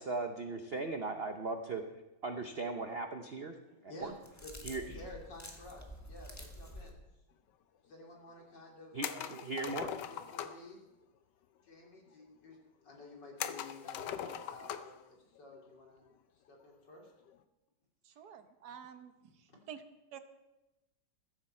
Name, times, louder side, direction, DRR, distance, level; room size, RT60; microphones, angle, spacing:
voice 1, 0.0-1.8 2.2-3.5 4.0-4.1 4.6-4.8 8.9-9.9, right 3 dB, 80° right, 5 dB, 0.5 m, -38 dB
voice 2, 3.6-4.1 4.4-7.0 7.8-9.3 10.1-10.8 11.6-16.0 16.3-17.1 18.1-18.2 19.5-19.6, left 2 dB, 50° left, -1 dB, 3.5 m, -52 dB
sound 1, 4.0-6.9, left 1 dB, 10° left, 1.1 m, -49 dB
sound 2, 9.0-10.7 13.4-15.0 15.4-15.5 17.1-17.4, left 9 dB, 70° left, 1.1 m, -40 dB
voice 3, 18.0-19.8 20.1-20.2, right 8 dB, 55° right, 9 dB, 1.3 m, -50 dB
15.5 x 14.0 x 4.4 m, 1.0 s
omnidirectional pair, 2.4 m